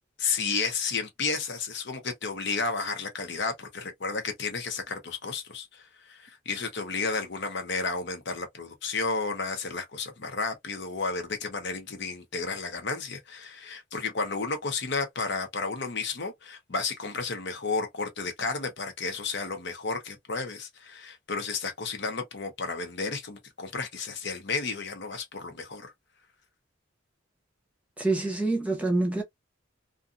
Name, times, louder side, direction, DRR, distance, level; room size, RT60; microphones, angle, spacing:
voice 1, 0.2-25.9, left 4 dB, 55° left, 0.8 m, -32 dB
voice 2, 28.0-29.2, right 2 dB, 5° right, 0.8 m, -26 dB
2.5 x 2.5 x 2.4 m
head